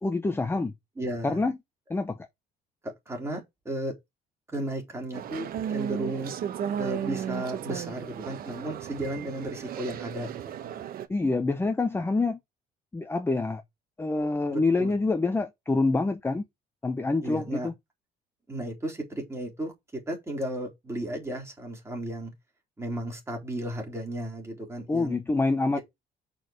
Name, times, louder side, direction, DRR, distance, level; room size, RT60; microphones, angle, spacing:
voice 1, 0.0-0.7 1.2-1.6 1.9-2.2 11.1-12.4 12.9-13.6 14.0-16.4 16.8-17.7 24.9-25.8, left 3 dB, 15° left, 0.8 m, -26 dB
voice 2, 1.0-1.4 2.8-3.9 4.5-6.3 6.8-10.7 14.5-14.9 17.2-17.7 18.5-22.3 22.8-25.2, right 1 dB, 15° right, 3.9 m, -34 dB
sound 1, 5.1-11.1, right 9 dB, 60° right, 1.0 m, -34 dB
6.3 x 4.7 x 5.1 m
cardioid pair, 110°, 17 cm